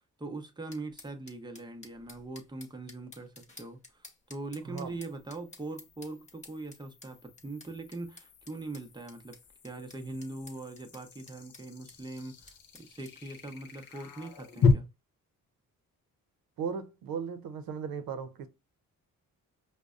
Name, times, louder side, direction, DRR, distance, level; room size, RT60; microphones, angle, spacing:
voice 1, 0.2-9.4 9.6-14.8, right 2 dB, 15° right, 0.6 m, -42 dB
sound 1, 0.7-13.1, left 3 dB, 20° left, 1.0 m, -53 dB
sound 2, 1.1-1.2 4.6-14.7, left 5 dB, 75° left, 0.8 m, -35 dB
voice 2, 16.6-18.5, right 6 dB, 85° right, 0.6 m, -36 dB
5.2 x 2.1 x 2.4 m
cardioid pair, 95°, 35 cm